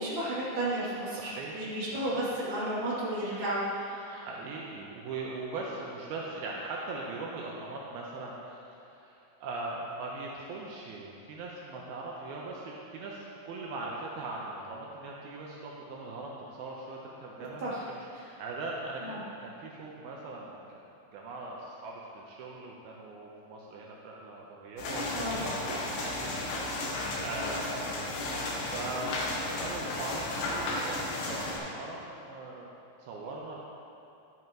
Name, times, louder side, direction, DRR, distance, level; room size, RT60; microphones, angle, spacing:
voice 1, 0.0-4.1 17.6-17.8 18.1-18.3 19.0-19.2 25.1-25.4, right 1 dB, 35° right, -10 dB, 3.0 m, -33 dB
voice 2, 1.1-1.6 1.9-2.2 4.1-8.6 8.8-20.8 21.1-26.8 27.2-28.1 28.6-32.6 33.0-33.6, right 3 dB, 80° right, -3 dB, 2.7 m, -40 dB
sound 1, 24.8-31.6, left 2 dB, 70° left, 2.8 m, -34 dB
11.5 x 10.5 x 3.0 m, 2.8 s
omnidirectional pair, 4.5 m